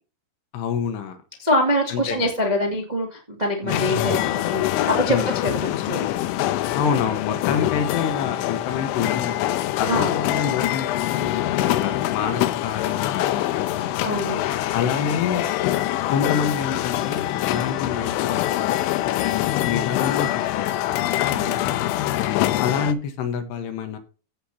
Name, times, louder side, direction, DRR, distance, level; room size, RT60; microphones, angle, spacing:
voice 1, 0.5-1.2 1.9-2.3 3.6-3.8 5.1-5.3 6.7-13.9 14.7-15.5 16.1-18.8 19.0-21.0 22.2-24.0, left 7 dB, 70° left, 7 dB, 3.2 m, -27 dB
voice 2, 1.4-5.2 5.4-6.1 9.9-10.1 14.0-14.4 21.3-21.6, equal, 55° right, -1 dB, 0.4 m, -24 dB
sound 1, 3.7-22.9, left 14 dB, 90° left, 3.2 m, -24 dB
16.5 x 6.2 x 2.9 m, 0.35 s
omnidirectional pair, 5.4 m